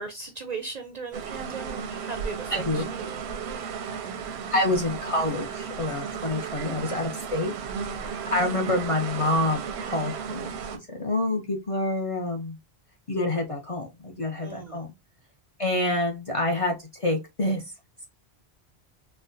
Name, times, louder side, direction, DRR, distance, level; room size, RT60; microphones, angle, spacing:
voice 1, 0.0-3.1 6.0-6.4 14.4-14.9, right 4 dB, 55° right, 0.5 m, -38 dB
sound 1, 1.1-10.8, right 6 dB, 90° right, 0.9 m, -34 dB
voice 2, 2.5-2.8 4.5-7.5 8.0-10.5 10.9-12.6 13.1-14.9 15.6-17.6, left 2 dB, 45° left, 0.5 m, -27 dB
4.2 x 2.1 x 2.5 m
omnidirectional pair, 1.1 m